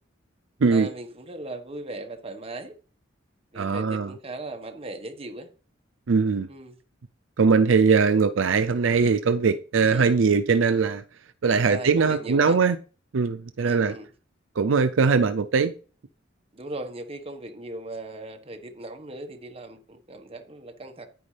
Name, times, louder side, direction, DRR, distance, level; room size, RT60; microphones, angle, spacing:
voice 1, 0.7-2.7 3.5-5.5 6.5-6.8 9.8-10.2 11.6-12.6 13.6-14.1 16.5-21.1, right 2 dB, 30° right, 1.4 m, -38 dB
voice 2, 3.6-4.1 6.1-6.5 7.4-11.0 11.4-12.8 13.1-13.9 14.6-15.7, right 5 dB, 75° right, 0.5 m, -21 dB
9.6 x 9.3 x 3.4 m
head